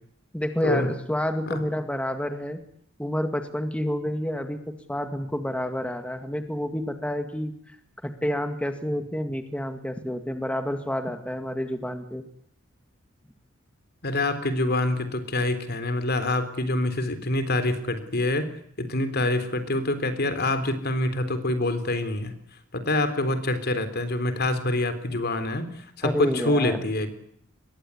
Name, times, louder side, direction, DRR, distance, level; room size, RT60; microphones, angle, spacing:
voice 1, 0.3-2.6 3.0-4.6 4.9-7.5 8.0-12.2 26.0-26.9, equal, 5° left, 7 dB, 2.0 m, -29 dB
voice 2, 14.0-18.5 18.8-22.3 22.7-25.7 26.0-27.2, left 2 dB, 55° left, 10 dB, 3.6 m, -26 dB
25.0 x 22.0 x 9.7 m, 0.67 s
head